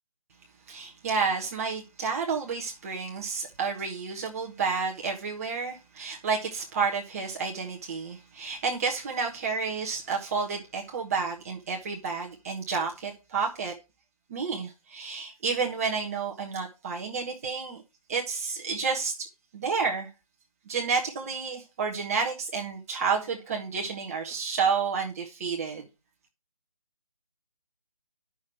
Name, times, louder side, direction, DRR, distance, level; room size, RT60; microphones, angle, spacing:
voice 1, 0.7-13.7 14.3-17.8 18.1-19.1 19.5-20.1 20.7-25.9, right 5 dB, 25° right, 1.3 m, -30 dB
10.0 x 6.3 x 4.7 m
figure-of-eight pair, 155°, 19 cm